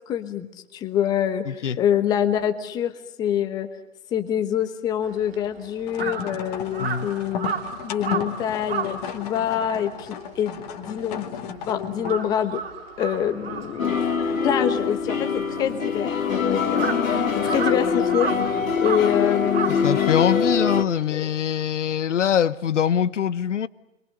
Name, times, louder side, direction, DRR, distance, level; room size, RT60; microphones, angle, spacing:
voice 1, 0.1-0.5 0.7-2.9 3.2-3.7 4.1-7.5 7.8-12.6 13.0-13.9 14.4-18.5 18.8-20.1 21.1-21.3, left 9 dB, 10° left, 1.1 m, -26 dB
voice 2, 1.5-1.8 6.8-7.1 19.8-23.7, left 9 dB, 65° left, 1.2 m, -23 dB
Crow, 5.0-11.6 11.9-20.5, right 6 dB, 50° right, 3.4 m, -33 dB
sound 1, 5.9-12.3, left 8 dB, 30° left, 2.2 m, -34 dB
sound 2, 13.8-20.8, left 6 dB, 90° left, 2.9 m, -24 dB
29.5 x 23.5 x 6.8 m
hypercardioid pair, 155°, 39 cm